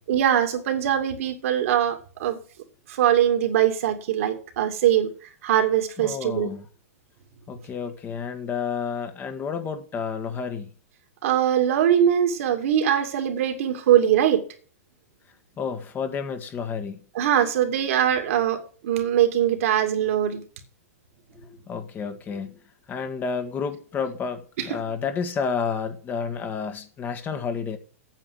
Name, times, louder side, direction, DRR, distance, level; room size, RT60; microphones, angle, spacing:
voice 1, 0.1-2.4 2.9-5.1 5.4-6.5 11.2-14.4 17.1-20.4 24.6-24.8, right 10 dB, 65° right, 2.6 m, -22 dB
voice 2, 6.0-6.6 7.5-10.7 15.6-17.0 21.3-22.5 22.9-27.8, left 6 dB, 25° left, 1.5 m, -30 dB
9.1 x 7.7 x 7.7 m
hypercardioid pair, 130°, 8 cm